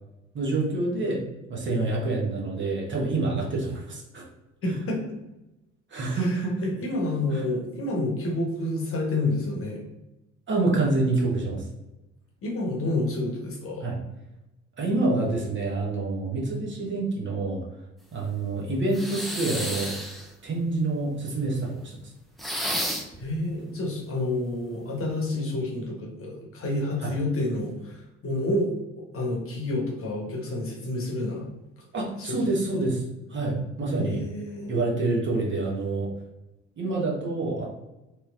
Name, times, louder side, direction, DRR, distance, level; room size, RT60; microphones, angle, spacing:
voice 1, 0.3-1.2 1.5-4.3 4.7-4.8 5.9-6.6 7.3-7.4 10.5-11.6 13.8-14.0 14.8-17.6 18.1-20.0 20.4-22.0 27.0-27.1 31.9-33.0 33.3-34.2 34.7-36.1 36.8-37.7, right 2 dB, 30° right, -2 dB, 1.0 m, -27 dB
voice 2, 4.6-5.0 6.1-9.8 12.4-13.9 23.2-31.5 31.8-31.9 32.2-32.8 33.9-34.7, left 2 dB, 35° left, -1 dB, 1.0 m, -29 dB
sound 1, 18.9-20.3 22.4-23.2, equal, ahead, 0.4 m, -31 dB
3.0 x 2.9 x 2.4 m, 0.97 s
figure-of-eight pair, 55°, 37 cm